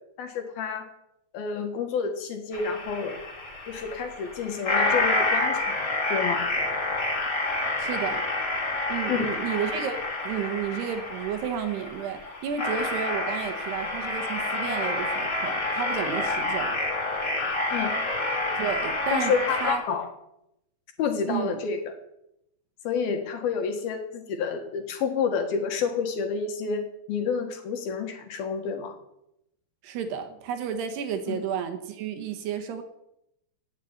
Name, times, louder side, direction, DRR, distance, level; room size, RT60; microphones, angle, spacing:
voice 1, 0.2-0.9 1.3-3.2 3.7-5.8 6.1-6.5 9.1-9.3 17.7-18.0 19.1-20.1 21.0-21.9 22.8-29.0 31.3-31.4, left 6 dB, 65° left, 5 dB, 3.1 m, -29 dB
sound 1, 2.5-19.7, left 2 dB, 25° left, 3.6 m, -28 dB
voice 2, 7.8-8.2 8.9-10.0 10.2-16.8 18.4-19.8 21.3-21.6 29.8-32.8, right 8 dB, 75° right, 6 dB, 3.1 m, -32 dB
16.5 x 7.9 x 9.7 m, 0.82 s
omnidirectional pair, 5.2 m